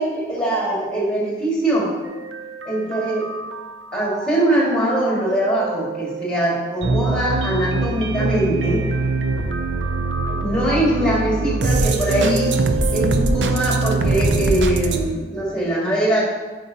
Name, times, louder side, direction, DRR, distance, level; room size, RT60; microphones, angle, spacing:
voice 1, 0.0-1.9 2.6-3.3 3.9-8.8 10.4-12.5 12.9-16.2, right 1 dB, 5° left, -5 dB, 1.8 m, -22 dB
sound 1, 2.1-15.0, right 3 dB, 90° right, 0.5 m, -23 dB
9.0 x 5.3 x 2.8 m, 1.3 s
head